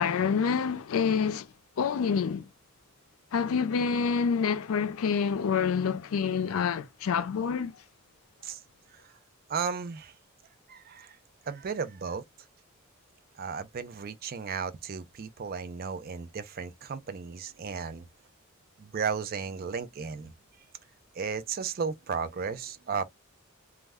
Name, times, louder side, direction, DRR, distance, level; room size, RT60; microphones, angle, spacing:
voice 1, 0.0-1.5 1.8-2.5 3.3-7.7, left 6 dB, 80° left, 0.4 m, -27 dB
voice 2, 9.5-10.1 10.7-11.2 11.5-12.2 13.4-18.0 18.8-20.3 21.2-23.0, right 6 dB, 45° right, 0.4 m, -34 dB
2.2 x 2.1 x 3.4 m
head